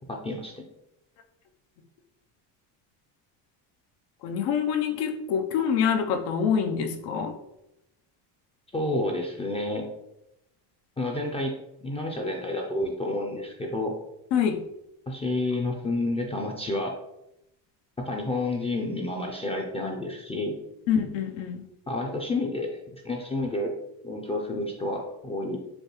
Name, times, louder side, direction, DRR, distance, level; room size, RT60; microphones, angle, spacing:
voice 1, 0.1-0.7 8.7-9.9 11.0-14.0 15.1-17.0 18.0-20.6 21.9-23.8 24.0-25.6, left 2 dB, 15° left, 0 dB, 0.4 m, -30 dB
voice 2, 4.2-7.3 14.3-14.6 20.9-21.6, left 7 dB, 90° left, 5 dB, 0.7 m, -26 dB
5.2 x 2.3 x 3.0 m, 0.86 s
cardioid pair, 125°, 42 cm